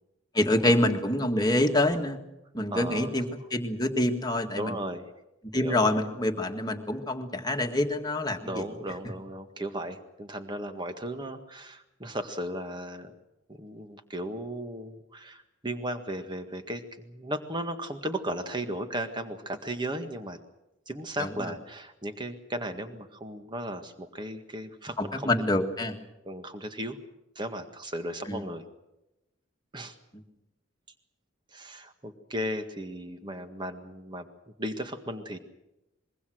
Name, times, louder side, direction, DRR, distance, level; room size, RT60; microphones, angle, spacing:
voice 1, 0.3-2.2 2.5-3.3 3.5-4.8 5.5-8.7 21.2-21.3 25.0-26.0 28.3-28.4, left 1 dB, 20° left, 4 dB, 1.9 m, -26 dB
voice 2, 2.7-3.2 4.6-5.1 5.5-5.8 8.4-13.1 13.5-20.4 20.9-25.3 26.2-27.0 27.4-28.6 29.7-30.0 31.5-34.3 34.6-35.4, right 1 dB, 25° right, 7 dB, 1.7 m, -36 dB
24.5 x 22.5 x 6.4 m, 0.94 s
head